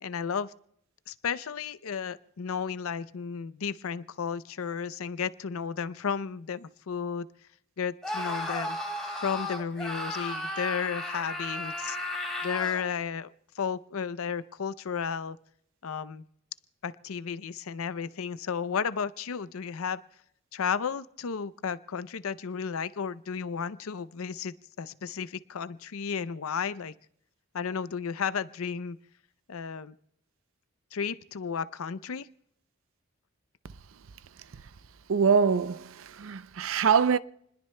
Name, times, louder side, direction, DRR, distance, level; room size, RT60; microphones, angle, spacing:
voice 1, 0.0-0.5 1.1-7.3 7.8-8.8 9.2-12.0 12.4-15.4 15.8-16.2 16.8-20.0 20.5-26.9 27.5-29.0 29.5-29.9 30.9-32.3, left 6 dB, 90° left, 0.5 m, -33 dB
Screaming, 8.0-12.9, left 1 dB, ahead, 3.1 m, -34 dB
voice 2, 35.1-37.2, right 6 dB, 75° right, 0.5 m, -24 dB
29.0 x 20.5 x 2.2 m
head